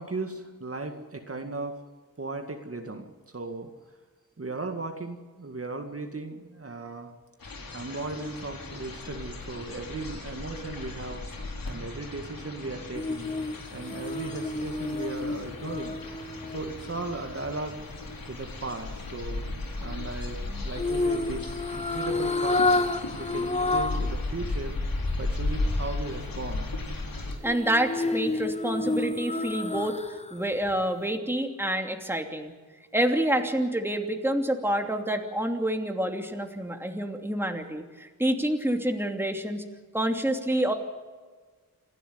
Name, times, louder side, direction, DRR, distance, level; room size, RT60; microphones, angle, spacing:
voice 1, 0.0-1.8 2.2-3.7 4.4-7.1 7.7-11.3 11.6-13.3 13.7-16.0 16.4-17.8 18.3-22.7 23.1-24.8 25.2-26.7, right 3 dB, 40° right, 4 dB, 2.1 m, -37 dB
sound 1, 7.4-27.4, left 2 dB, 75° left, 4.4 m, -35 dB
sound 2, 13.0-17.2 20.8-24.1 24.5-24.6 27.4-30.3 30.7-30.8, left 2 dB, 20° left, 1.0 m, -29 dB
voice 2, 27.4-30.0 30.3-32.5 32.9-39.6 39.9-40.7, right 1 dB, 5° right, 4 dB, 2.8 m, -28 dB
27.5 x 12.0 x 9.5 m, 1.4 s
wide cardioid pair, 75°, 35 cm